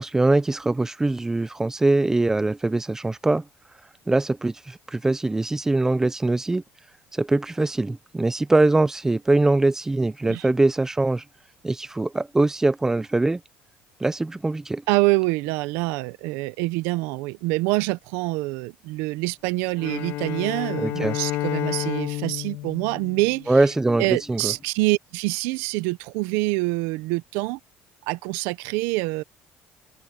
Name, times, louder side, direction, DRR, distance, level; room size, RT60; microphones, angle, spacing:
voice 1, 0.0-3.4 4.1-6.6 7.1-11.2 11.6-13.4 14.0-14.8 20.8-21.2 23.5-24.5, right 2 dB, 10° right, 0.9 m, -22 dB
voice 2, 14.9-23.7 24.0-27.6 28.1-29.2, right 21 dB, 85° right, 0.9 m, -26 dB
Bowed string instrument, 19.8-24.0, left 16 dB, 75° left, 2.6 m, -31 dB
cardioid pair, 110°, 4 cm